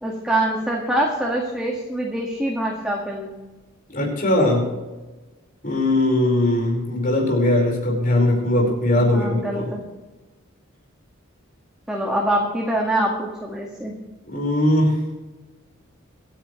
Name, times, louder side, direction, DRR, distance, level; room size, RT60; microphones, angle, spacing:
voice 1, 0.0-3.4 8.9-9.8 11.9-13.9, right 1 dB, 5° right, -3 dB, 1.9 m, -24 dB
voice 2, 3.9-4.7 5.6-9.7 14.2-15.0, left 1 dB, 45° left, 0 dB, 5.1 m, -20 dB
25.5 x 10.0 x 3.3 m, 1.2 s
head